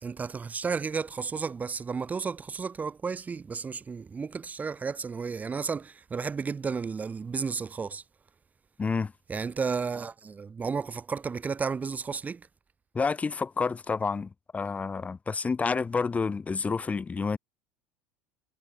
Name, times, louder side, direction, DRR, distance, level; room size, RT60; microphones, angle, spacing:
voice 1, 0.0-8.0 9.3-12.4, right 5 dB, 20° right, 3.1 m, -33 dB
voice 2, 8.8-9.1 12.9-17.4, left 4 dB, 20° left, 4.7 m, -29 dB
supercardioid pair, 120°, 7 cm